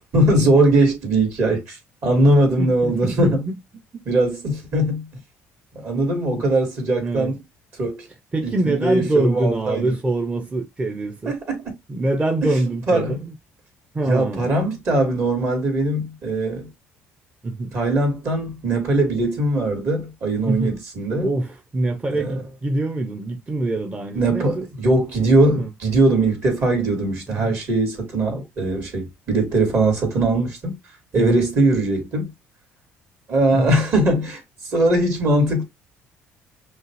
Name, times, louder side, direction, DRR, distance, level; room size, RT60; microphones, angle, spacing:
voice 1, 0.1-1.8 2.0-3.4 4.1-5.1 5.7-7.4 7.8-8.1 8.4-9.9 11.3-11.6 12.9-13.2 14.1-16.7 17.7-21.3 22.1-22.4 24.1-30.7 31.1-32.3 33.3-34.4 34.7-35.6, right 2 dB, 55° right, 2.6 m, -20 dB
voice 2, 2.6-3.6 3.9-4.0 6.4-6.5 7.0-7.3 8.3-11.3 11.9-13.4 13.9-14.5 17.4-17.8 20.4-20.8 21.2-24.7 25.5-25.7 31.2-31.4 33.5-33.8, right 2 dB, 25° right, 0.7 m, -24 dB
5.6 x 2.4 x 3.2 m
supercardioid pair, 80°, 5 cm